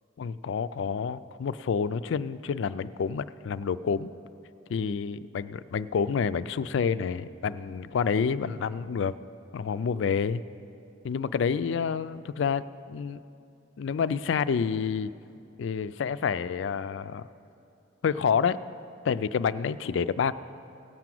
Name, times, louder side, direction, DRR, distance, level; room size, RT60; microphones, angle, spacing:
voice 1, 0.2-4.1 4.7-9.2 9.5-10.4 11.0-13.2 13.8-15.1 15.6-17.3 18.0-18.6 19.0-20.3, left 6 dB, 65° left, 14 dB, 0.3 m, -28 dB
17.5 x 6.0 x 7.6 m, 2.6 s
head